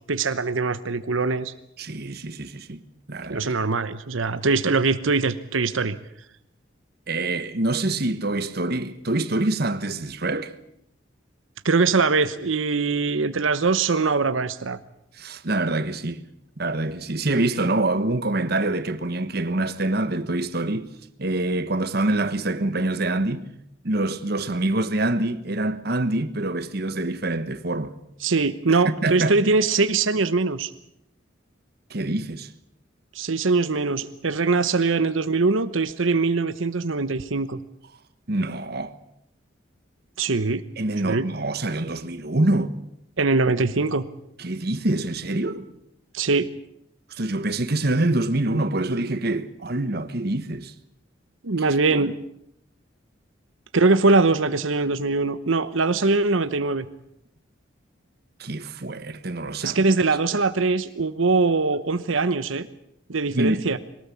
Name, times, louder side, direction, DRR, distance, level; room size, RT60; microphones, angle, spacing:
voice 1, 0.1-1.5 3.3-6.0 11.6-14.8 28.2-30.7 33.1-37.6 40.2-40.6 41.0-41.3 43.2-44.1 46.1-46.5 51.4-52.2 53.7-56.9 59.6-62.7 63.1-63.8, right 3 dB, 85° right, 1.0 m, -22 dB
voice 2, 1.8-2.8 3.1-3.4 7.1-10.5 15.2-16.2 16.6-20.9 21.2-23.5 23.8-27.9 28.8-29.3 31.9-32.5 38.3-38.9 40.8-42.7 44.4-45.7 47.1-50.7 51.9-52.1 58.4-59.8 63.3-63.6, right 2 dB, 50° right, 1.3 m, -25 dB
22.0 x 19.0 x 8.5 m
head